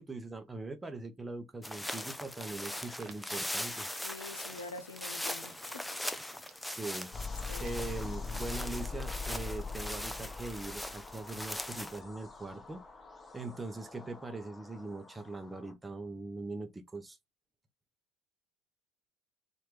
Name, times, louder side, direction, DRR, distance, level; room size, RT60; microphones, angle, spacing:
voice 1, 0.0-3.9 6.6-7.1 7.6-12.8 13.3-17.2, right 3 dB, 15° right, 0.8 m, -41 dB
sound 1, 1.6-12.0, left 1 dB, 5° left, 0.5 m, -40 dB
Crackle, 2.9-8.0, right 10 dB, 50° right, 0.7 m, -61 dB
voice 2, 4.0-5.7 6.2-6.3 7.5-7.7, left 3 dB, 80° left, 0.6 m, -46 dB
sound 2, 7.1-15.7, left 4 dB, 25° left, 1.1 m, -43 dB
4.3 x 2.6 x 3.2 m
figure-of-eight pair, 65°, 0 cm